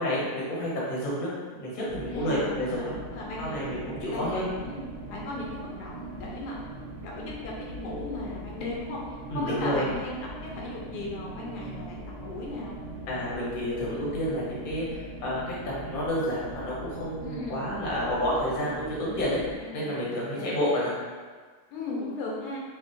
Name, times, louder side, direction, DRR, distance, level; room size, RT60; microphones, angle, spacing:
voice 1, 0.0-3.0 3.4-4.5 9.3-9.8 13.1-19.4 19.7-20.9, equal, 45° left, -6 dB, 0.8 m, -30 dB
sound 1, 1.9-19.6, right 2 dB, 75° right, 1.3 m, -40 dB
voice 2, 2.1-3.7 4.1-6.6 7.0-9.0 9.3-12.8 17.2-17.6 19.6-20.1 20.3-20.5 21.7-22.6, left 2 dB, 90° left, -3 dB, 1.2 m, -37 dB
3.4 x 2.1 x 2.6 m, 1.5 s
omnidirectional pair, 1.7 m